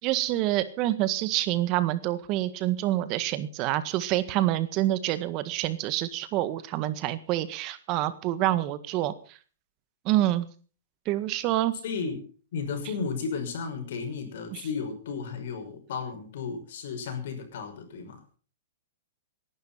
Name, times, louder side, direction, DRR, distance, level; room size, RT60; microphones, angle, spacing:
voice 1, 0.0-9.4 10.1-10.5 11.1-11.7 14.5-14.7, right 14 dB, 40° right, 13 dB, 1.7 m, -27 dB
voice 2, 11.8-12.2 12.5-18.2, left 5 dB, 65° left, 6 dB, 6.0 m, -34 dB
18.0 x 11.5 x 5.7 m, 0.41 s
hypercardioid pair, 135°, 0 cm